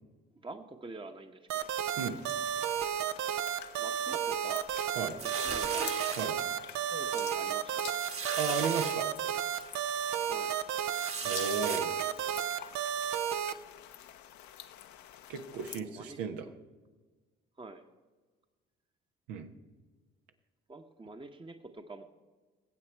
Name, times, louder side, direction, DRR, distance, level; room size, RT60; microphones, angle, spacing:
voice 1, 0.3-1.7 3.8-4.7 5.2-5.9 6.9-7.9 10.3-10.5 15.5-16.4 17.6-17.9 20.7-22.0, right 3 dB, 15° right, 6 dB, 1.0 m, -46 dB
sound 1, 1.5-15.8, left 11 dB, 70° left, 0.9 m, -49 dB
sound 2, 1.5-13.5, right 9 dB, 65° right, 0.7 m, -32 dB
sound 3, 5.2-6.3 6.9-7.1 7.3-7.4 8.0-8.9 9.5-9.7 10.9-11.8, right 5 dB, 45° right, 1.8 m, -37 dB
voice 2, 8.4-9.1 11.3-11.9 15.3-16.5 19.3-19.5, right 6 dB, 80° right, 6 dB, 1.1 m, -34 dB
19.0 x 8.0 x 4.5 m, 1.3 s
hypercardioid pair, 55°, 30 cm